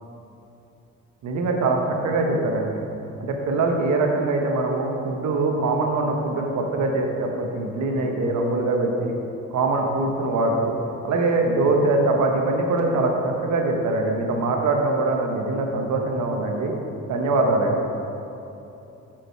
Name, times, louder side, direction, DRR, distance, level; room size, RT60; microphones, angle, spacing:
voice 1, 1.2-2.9 3.2-9.1 9.5-10.7 11.0-16.7 17.1-17.9, right 2 dB, 70° right, 2 dB, 1.1 m, -23 dB
6.6 x 6.3 x 4.6 m, 3.0 s
cardioid pair, 90°, 30 cm